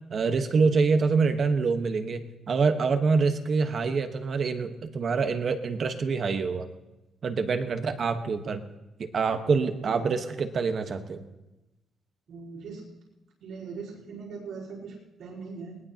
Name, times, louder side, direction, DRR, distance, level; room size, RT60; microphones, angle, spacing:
voice 1, 0.1-6.7 7.2-8.6 9.0-11.3, right 4 dB, 40° right, 7 dB, 1.2 m, -26 dB
voice 2, 12.3-12.9 13.4-15.9, right 4 dB, 80° right, -8 dB, 4.2 m, -40 dB
21.0 x 19.5 x 2.9 m, 0.99 s
cardioid pair, 155°, 0 cm